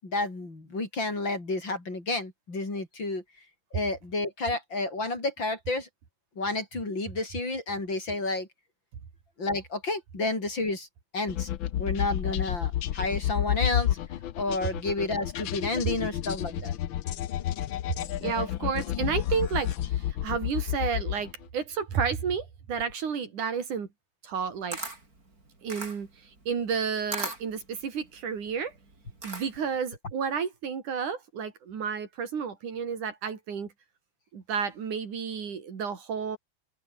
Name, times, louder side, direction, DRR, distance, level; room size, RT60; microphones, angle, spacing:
voice 1, 0.0-3.2 3.7-5.9 6.4-8.5 9.4-10.9 11.1-11.5 11.8-13.9 14.4-16.8, left 2 dB, 35° left, 6.5 m, -30 dB
sound 1, 11.3-21.5, left 12 dB, 80° left, 1.1 m, -30 dB
voice 2, 18.2-23.9 24.2-24.8 25.6-28.7 29.2-33.7 34.3-36.4, right 6 dB, 85° right, 4.8 m, -31 dB
Camera, 24.3-29.8, right 2 dB, 25° right, 5.6 m, -39 dB
open air
omnidirectional pair, 3.5 m